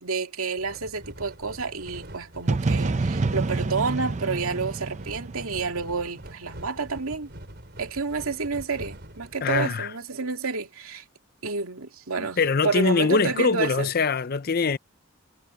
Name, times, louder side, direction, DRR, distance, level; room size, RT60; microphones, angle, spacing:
voice 1, 0.0-7.3 7.8-11.0 11.4-13.9, right 4 dB, 80° right, 2.5 m, -29 dB
sound 1, 0.6-9.6, right 1 dB, 50° right, 5.1 m, -44 dB
sound 2, 2.5-6.3, right 3 dB, 35° right, 0.5 m, -27 dB
voice 2, 9.4-9.9 12.2-14.8, left 4 dB, 45° left, 0.6 m, -23 dB
head